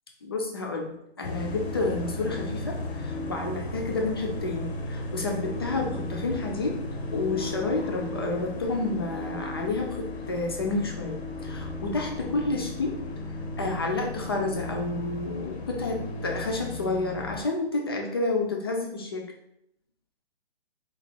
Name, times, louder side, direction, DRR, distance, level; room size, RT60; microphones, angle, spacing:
voice 1, 0.2-6.8 7.1-11.2 11.4-13.0 13.6-19.3, left 3 dB, 25° left, 1 dB, 0.4 m, -30 dB
sound 1, 1.2-17.4, left 2 dB, 80° left, 0.8 m, -35 dB
4.0 x 2.3 x 4.3 m, 0.79 s
hypercardioid pair, 160°, 31 cm